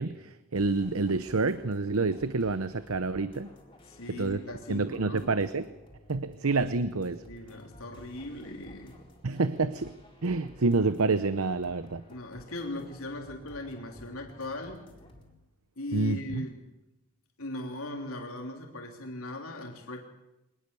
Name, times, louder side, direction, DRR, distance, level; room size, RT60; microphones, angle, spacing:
voice 1, 0.0-3.5 4.1-4.4 4.7-5.7 6.1-7.2 9.2-12.1 15.9-16.4, right 3 dB, 80° right, 13 dB, 0.8 m, -28 dB
sound 1, 0.6-15.3, left 1 dB, 20° left, 4.2 m, -53 dB
voice 2, 3.9-5.3 7.2-9.0 12.1-14.9 15.8-16.6 17.4-20.1, left 1 dB, 80° left, 2 dB, 3.3 m, -39 dB
24.0 x 20.0 x 6.9 m, 0.93 s
head